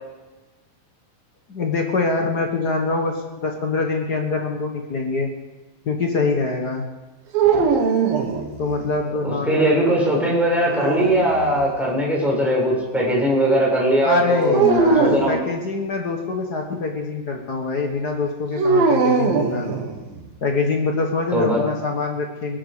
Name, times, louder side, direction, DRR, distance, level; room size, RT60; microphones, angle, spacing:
voice 1, 1.5-5.3 5.8-6.9 8.6-9.7 14.0-19.7 20.4-22.6, left 3 dB, 60° left, 2 dB, 1.0 m, -24 dB
sound 1, 7.3-8.9 10.6-11.7 14.5-15.3 18.6-20.2, right 5 dB, 85° right, 3.5 m, -20 dB
voice 2, 9.2-15.4 21.3-21.6, right 1 dB, ahead, -4 dB, 5.7 m, -20 dB
21.0 x 12.5 x 5.0 m, 1.2 s
omnidirectional pair, 4.0 m